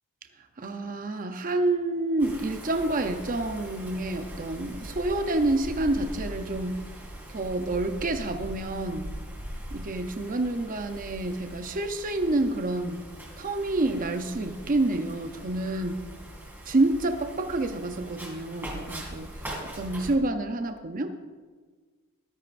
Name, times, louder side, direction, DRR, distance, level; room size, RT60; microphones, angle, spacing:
voice 1, 0.6-6.9 7.3-9.2 9.7-13.0 13.4-16.0 16.6-21.1, right 2 dB, 40° right, 7 dB, 0.7 m, -28 dB
Wind, 2.2-20.1, right 1 dB, 10° right, 2.5 m, -41 dB
14.0 x 13.0 x 2.6 m, 1.5 s
head